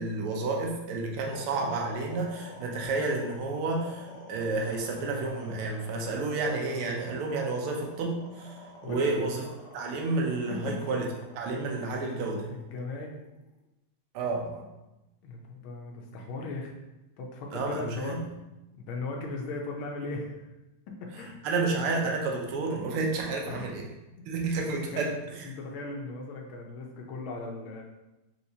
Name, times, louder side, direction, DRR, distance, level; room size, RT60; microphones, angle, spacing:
voice 1, 0.0-9.4 9.7-11.1 11.3-12.5 14.1-14.7 17.5-18.2 21.4-23.9 24.3-25.5, right 3 dB, 85° right, 0 dB, 1.6 m, -30 dB
sound 1, 1.3-13.6, left 2 dB, 60° left, 1.3 m, -47 dB
voice 2, 8.8-9.2 10.6-10.9 12.5-13.1 15.2-16.7 17.2-18.2 18.7-20.4 21.0-21.4 23.5-23.8 24.9-25.1 25.4-27.8, left 3 dB, 75° left, 0 dB, 1.5 m, -37 dB
4.4 x 3.5 x 2.7 m, 0.97 s
omnidirectional pair, 2.3 m